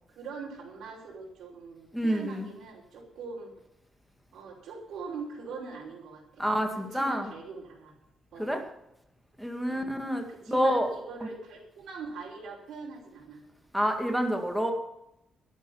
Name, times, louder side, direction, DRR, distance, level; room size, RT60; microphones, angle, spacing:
voice 1, 0.1-3.5 4.3-6.5 6.8-7.9 8.3-8.5 9.7-9.9 10.3-13.4, right 4 dB, 80° right, -3 dB, 5.2 m, -42 dB
voice 2, 1.9-2.5 6.4-7.3 8.4-8.6 9.4-10.9 13.7-14.7, equal, ahead, 3 dB, 2.2 m, -28 dB
12.0 x 11.5 x 7.2 m, 0.82 s
cardioid pair, 145°, 0 cm